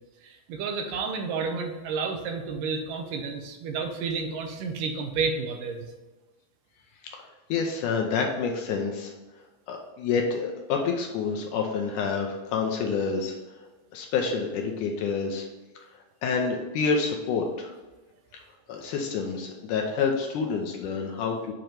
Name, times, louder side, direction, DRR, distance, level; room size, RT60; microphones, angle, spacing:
voice 1, 0.2-5.9, right 5 dB, 80° right, 4 dB, 2.2 m, -31 dB
voice 2, 7.5-9.1 9.7-13.3 13.9-15.5 16.2-17.7 18.7-21.5, left 5 dB, 80° left, 1 dB, 2.0 m, -28 dB
7.7 x 3.0 x 5.1 m, 1.2 s
omnidirectional pair, 4.0 m